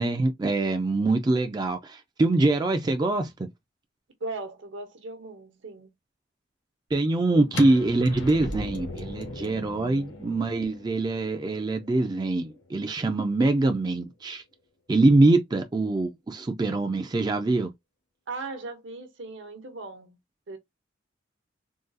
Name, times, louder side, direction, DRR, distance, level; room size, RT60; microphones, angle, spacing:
voice 1, 0.0-3.5 6.9-14.4 14.9-17.7, right 2 dB, 20° right, 0.3 m, -24 dB
voice 2, 4.2-5.9 7.3-7.4 18.3-20.2 20.5-20.6, right 3 dB, 70° right, 0.9 m, -38 dB
sound 1, 7.5-13.3, left 2 dB, 65° left, 1.0 m, -39 dB
3.7 x 2.3 x 2.5 m
head